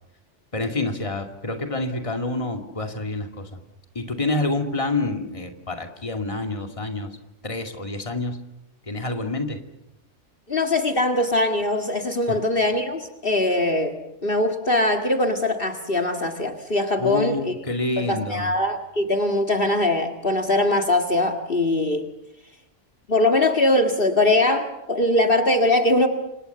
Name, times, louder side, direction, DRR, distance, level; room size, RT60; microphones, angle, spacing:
voice 1, 0.5-3.5 3.9-7.1 7.4-8.4 8.9-9.6 12.3-12.4 17.0-18.5, left 2 dB, 25° left, 5 dB, 2.4 m, -27 dB
voice 2, 10.5-14.0 14.2-17.5 18.0-22.1 23.1-26.1, left 1 dB, 50° left, 5 dB, 2.2 m, -21 dB
29.5 x 26.5 x 6.9 m, 0.86 s
omnidirectional pair, 1.2 m